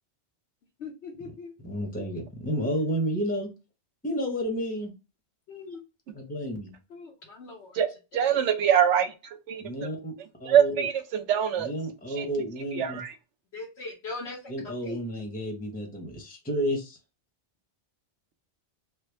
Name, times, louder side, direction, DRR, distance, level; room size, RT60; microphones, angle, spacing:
voice 1, 0.8-1.5 5.5-5.8 6.9-7.8 8.1-8.4 13.5-15.0, left 3 dB, 75° left, 1.1 m, -40 dB
voice 2, 1.6-3.5 4.0-4.9 6.1-6.7 9.6-10.1 10.4-10.9 11.6-13.0 14.5-17.0, equal, 10° left, 0.9 m, -31 dB
voice 3, 8.1-9.1 9.5-9.6 10.4-11.7 12.2-12.3 12.8-13.1, right 9 dB, 90° right, 1.0 m, -23 dB
3.3 x 2.2 x 3.3 m
omnidirectional pair, 1.2 m